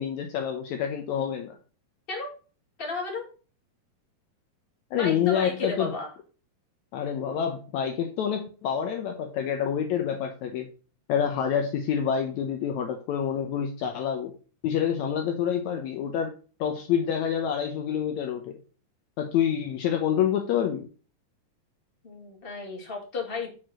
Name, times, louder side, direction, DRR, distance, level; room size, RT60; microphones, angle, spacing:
voice 1, 0.0-1.6 4.9-5.9 6.9-10.7 11.1-14.3 14.6-16.3 16.6-18.6 19.2-20.8, left 8 dB, 85° left, 4 dB, 1.6 m, -27 dB
voice 2, 2.8-3.3 4.9-6.1 22.0-23.5, left 3 dB, 20° left, -1 dB, 1.8 m, -33 dB
6.1 x 4.6 x 6.1 m, 0.38 s
omnidirectional pair, 4.1 m